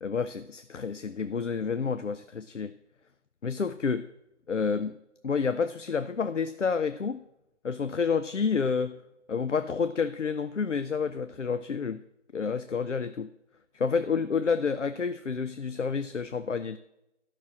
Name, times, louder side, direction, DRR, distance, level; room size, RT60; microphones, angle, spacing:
voice 1, 0.0-2.7 3.4-4.1 4.5-4.9 5.2-7.2 7.6-9.0 9.3-12.0 12.3-13.3 13.7-16.8, left 5 dB, 75° left, 12 dB, 0.6 m, -29 dB
12.0 x 6.0 x 6.2 m, 0.87 s
figure-of-eight pair, 180°, 36 cm